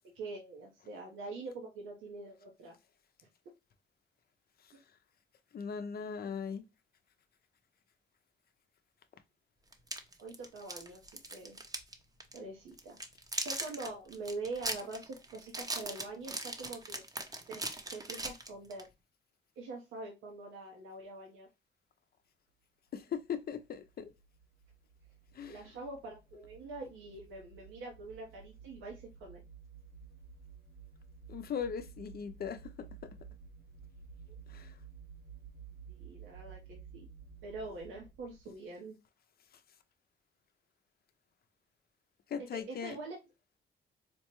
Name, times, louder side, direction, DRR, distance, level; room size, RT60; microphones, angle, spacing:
voice 1, 0.1-2.7 4.7-4.8 6.2-6.3 10.2-11.6 12.3-13.0 13.4-17.0 17.4-18.9 19.6-21.5 25.4-29.4 34.3-34.8 35.9-37.1 37.4-38.9 42.5-43.2, right 3 dB, 85° right, 0.9 m, -44 dB
voice 2, 5.5-6.6 22.9-24.1 25.3-25.6 31.3-33.1 34.5-34.7 42.3-43.0, left 7 dB, 50° left, 0.6 m, -39 dB
sound 1, 9.7-11.9 12.2-12.4 12.8-18.9, right 2 dB, 20° right, 0.7 m, -39 dB
sound 2, 23.3-38.6, right 6 dB, 60° right, 0.7 m, -53 dB
4.4 x 2.2 x 2.9 m
cardioid pair, 90°, 20 cm